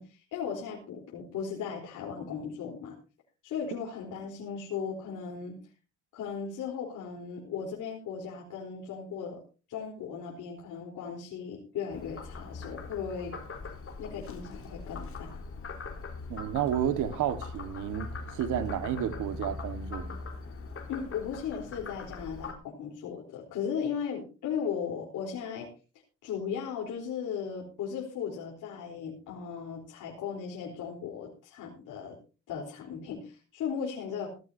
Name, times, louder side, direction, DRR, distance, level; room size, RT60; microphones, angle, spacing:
voice 1, 0.0-3.0 3.4-5.6 6.1-9.4 9.7-13.4 14.0-15.4 20.9-25.7 26.2-32.2 32.5-34.3, left 7 dB, 85° left, 4.0 m, -37 dB
Frog, 11.9-22.5, left 3 dB, 45° left, 4.1 m, -41 dB
voice 2, 16.3-20.2, right 10 dB, 90° right, 1.6 m, -31 dB
18.0 x 14.5 x 2.8 m
cardioid pair, 90°, 30 cm